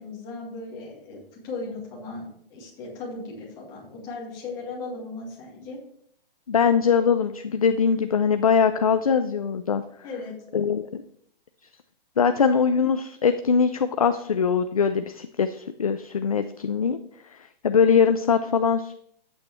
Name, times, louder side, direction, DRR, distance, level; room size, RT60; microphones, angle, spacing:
voice 1, 0.0-5.8 10.0-10.3, left 3 dB, 15° left, -4 dB, 2.0 m, -37 dB
voice 2, 6.5-9.8 10.5-11.0 12.2-17.0 17.6-18.9, left 6 dB, 40° left, 9 dB, 0.4 m, -22 dB
10.5 x 8.4 x 3.1 m, 0.67 s
hypercardioid pair, 170°, 29 cm